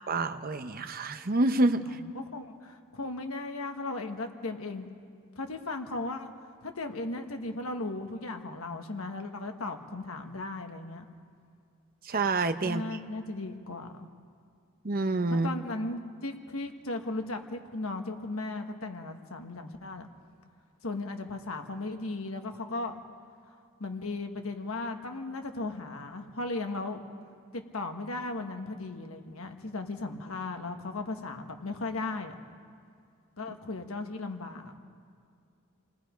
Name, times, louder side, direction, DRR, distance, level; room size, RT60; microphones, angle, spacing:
voice 1, 0.1-2.0 12.0-12.8 14.8-15.5, right 2 dB, 45° right, 9 dB, 0.8 m, -27 dB
voice 2, 1.9-4.9 5.3-6.3 6.6-11.0 12.6-14.1 15.3-20.1 20.8-23.0 23.8-27.0 27.5-32.4 33.4-34.8, left 2 dB, 75° left, 5 dB, 1.5 m, -36 dB
28.5 x 18.5 x 5.2 m, 2.3 s
head